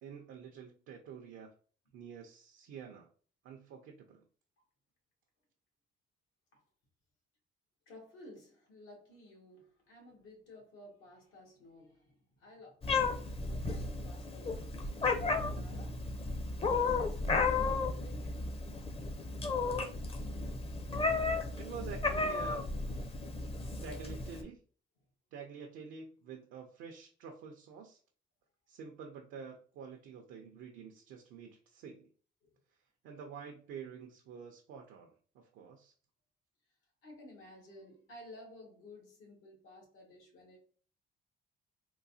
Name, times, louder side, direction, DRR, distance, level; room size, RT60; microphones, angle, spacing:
voice 1, 0.0-1.5 1.9-3.1 3.4-4.2 21.6-22.7 23.8-24.6 25.3-28.0 28.7-32.1 33.0-35.9, right 6 dB, 90° right, 0.5 m, -48 dB
voice 2, 7.9-14.9 15.2-16.0 16.9-18.4 32.5-32.6 37.0-40.6, left 2 dB, 85° left, 1.6 m, -54 dB
Meow, 12.8-24.4, left 3 dB, 30° left, 0.6 m, -34 dB
3.8 x 2.3 x 2.6 m
cardioid pair, 90°, 20 cm